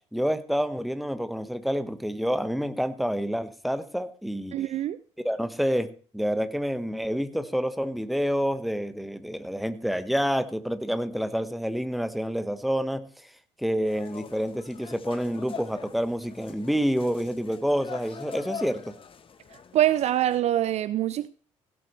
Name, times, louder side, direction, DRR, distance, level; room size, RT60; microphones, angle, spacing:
voice 1, 0.1-4.6 5.2-5.9 6.1-13.0 13.6-18.9, equal, ahead, 1.3 m, -28 dB
voice 2, 4.5-5.0 19.7-21.3, right 12 dB, 45° right, 0.5 m, -24 dB
sound 1, 13.9-20.4, left 6 dB, 35° left, 1.2 m, -43 dB
16.5 x 11.5 x 3.2 m
figure-of-eight pair, 50°, 16 cm